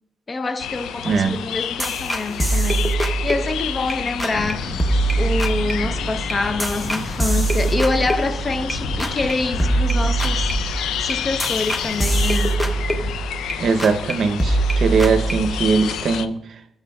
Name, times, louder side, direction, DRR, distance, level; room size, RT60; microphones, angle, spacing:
voice 1, 0.3-4.7 5.2-10.5 11.0-12.6, left 3 dB, 25° left, 0.5 m, -26 dB
sound 1, 0.6-16.3, left 9 dB, 90° left, 0.3 m, -30 dB
voice 2, 1.0-1.4 13.6-16.6, right 5 dB, 55° right, 0.6 m, -20 dB
sound 2, 1.8-3.9 4.2-4.5 4.8-8.7 9.0-9.3 9.6-13.5 13.8-14.1 14.4-15.9, right 2 dB, 5° left, 0.8 m, -23 dB
sound 3, 4.3-13.1, left 1 dB, 55° left, 2.3 m, -33 dB
14.0 x 7.0 x 2.3 m
cardioid pair, 125°, 0 cm